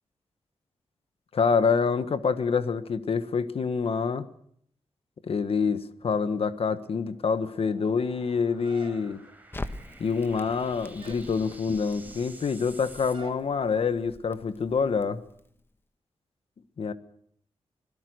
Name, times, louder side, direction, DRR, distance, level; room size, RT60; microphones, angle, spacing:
voice 1, 1.3-4.3 5.3-9.2 10.0-15.2 16.8-16.9, left 5 dB, 65° left, 12 dB, 1.4 m, -26 dB
sound 1, 5.8-13.2, right 2 dB, 15° right, 5.6 m, -52 dB
sound 2, 8.6-9.4 10.2-10.6 11.0-11.3 13.1-13.5, right 4 dB, 55° right, 2.5 m, -47 dB
Crackle, 9.5-15.7, left 2 dB, 20° left, 1.4 m, -44 dB
25.5 x 17.5 x 6.4 m, 0.67 s
wide cardioid pair, 90°, 11 cm